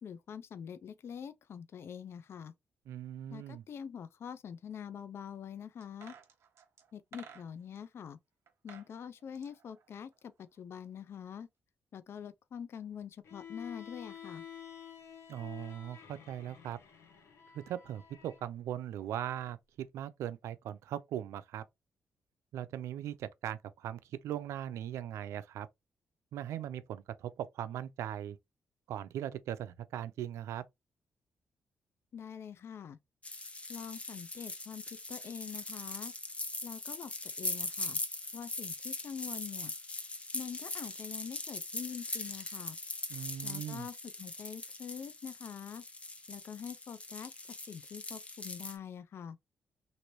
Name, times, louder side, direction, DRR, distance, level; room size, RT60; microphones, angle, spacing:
voice 1, 0.0-2.5 3.3-6.1 6.9-8.2 8.6-11.5 11.9-14.4 32.1-33.0 33.7-36.1 36.6-37.1 37.4-38.0 38.3-39.7 40.3-42.8 43.4-45.8 46.3-47.3 47.7-49.4, left 8 dB, 60° left, 0.3 m, -45 dB
voice 2, 2.9-3.6 15.3-16.8 17.5-21.6 22.5-25.7 26.3-28.4 28.9-30.6 43.1-43.9, right 11 dB, 90° right, 0.4 m, -39 dB
sound 1, 5.8-7.8 8.5-8.9 9.2-10.6 10.8-10.9, right 7 dB, 70° right, 0.9 m, -54 dB
Bowed string instrument, 13.2-18.5, left 8 dB, 80° left, 0.8 m, -50 dB
sound 2, 33.2-48.8, left 2 dB, 25° left, 0.8 m, -41 dB
3.0 x 2.5 x 3.0 m
cardioid pair, 75°, 5 cm